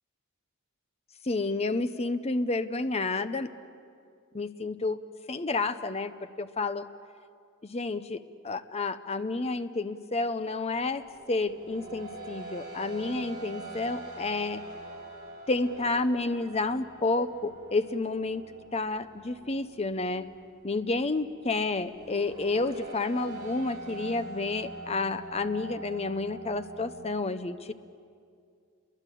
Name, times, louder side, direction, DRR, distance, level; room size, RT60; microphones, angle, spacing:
voice 1, 1.2-3.5 4.3-5.0 5.3-6.9 7.6-14.6 15.5-18.4 18.7-20.3 20.6-27.7, left 3 dB, 30° left, 11 dB, 0.7 m, -30 dB
sound 1, 10.6-27.0, right 2 dB, 20° right, 7.7 m, -44 dB
29.5 x 22.5 x 8.5 m, 2.3 s
head